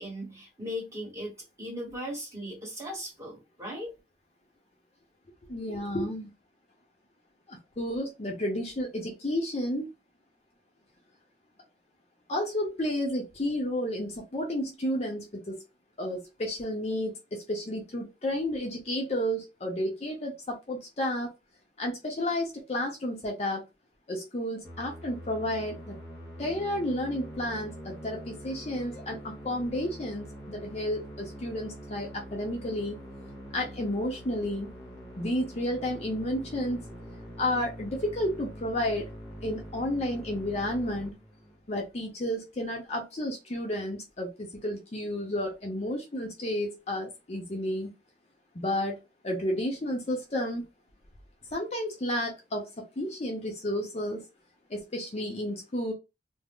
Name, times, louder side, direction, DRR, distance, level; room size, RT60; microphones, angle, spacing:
voice 1, 0.0-3.9, equal, 15° right, 1.2 m, -38 dB
voice 2, 5.5-6.3 7.5-9.9 12.3-15.6 16.0-21.3 21.8-23.6 24.1-26.0 26.4-33.0 33.5-34.7 35.2-36.8 37.4-39.1 39.4-41.1 41.7-47.9 48.5-49.0 49.2-50.6 51.5-54.2 54.7-55.9, left 1 dB, 35° left, 0.6 m, -31 dB
Musical instrument, 24.6-41.8, equal, 20° left, 0.9 m, -44 dB
2.4 x 2.0 x 3.5 m
head